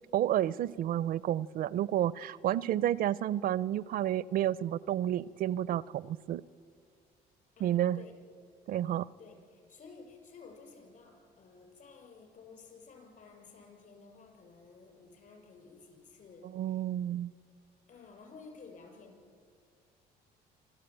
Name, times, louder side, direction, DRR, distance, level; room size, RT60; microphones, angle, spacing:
voice 1, 0.1-6.4 7.6-8.0 8.7-9.1 16.5-17.3, right 12 dB, 60° right, 0.4 m, -30 dB
voice 2, 7.6-8.2 9.2-16.8 17.9-19.2, left 4 dB, 50° left, 6.4 m, -54 dB
27.0 x 13.5 x 8.9 m
cardioid pair, 110°, 17 cm